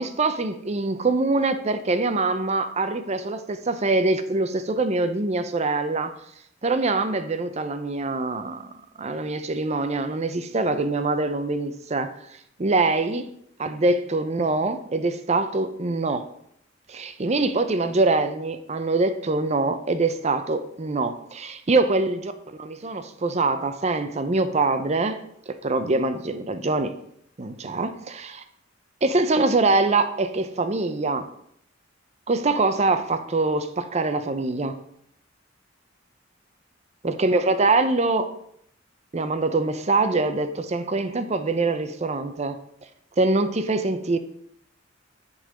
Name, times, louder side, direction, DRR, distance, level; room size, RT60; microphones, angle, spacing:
voice 1, 0.0-6.1 6.6-8.7 9.0-12.1 12.6-13.3 13.6-16.3 16.9-22.3 22.6-25.2 25.5-27.0 27.4-28.4 29.0-31.3 32.3-34.8 37.0-38.3 39.1-42.6 43.2-44.2, right 3 dB, 35° right, 0.6 m, -24 dB
10.0 x 4.0 x 4.9 m
head